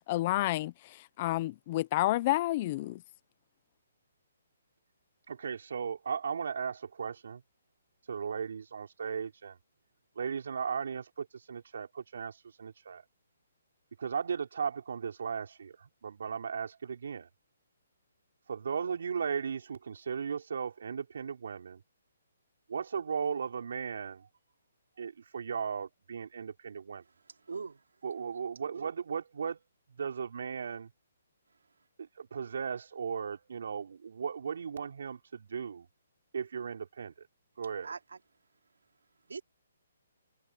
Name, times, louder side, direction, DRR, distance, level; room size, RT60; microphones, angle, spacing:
voice 1, 0.1-3.0, left 16 dB, 35° left, 0.7 m, -30 dB
voice 2, 5.3-7.4 8.1-9.6 10.1-13.0 14.0-17.3 18.5-21.8 22.7-24.3 25.0-27.0 28.0-29.6 30.0-30.9 32.0-35.9 36.3-37.1 37.6-37.9, right 6 dB, 70° right, 5.0 m, -36 dB
voice 3, 27.0-27.8 37.8-38.2 39.3-39.4, right 5 dB, 90° right, 2.9 m, -42 dB
hypercardioid pair, 155°, 0 cm